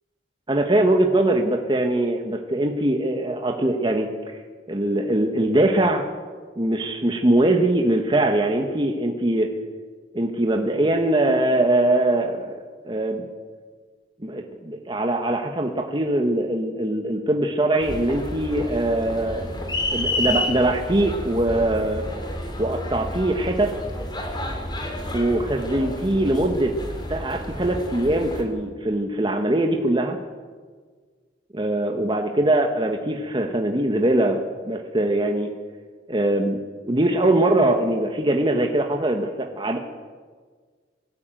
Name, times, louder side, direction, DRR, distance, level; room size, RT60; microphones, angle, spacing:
voice 1, 0.5-4.1 4.7-6.0 6.6-9.5 10.1-13.2 14.2-19.5 19.9-22.0 22.6-23.7 25.1-26.7 27.1-30.2 31.5-35.5 36.1-36.6 36.8-39.8, right 1 dB, 30° right, 3 dB, 1.4 m, -22 dB
sound 1, 17.8-28.4, left 1 dB, 25° left, 3.2 m, -30 dB
22.0 x 13.5 x 9.1 m, 1.5 s
head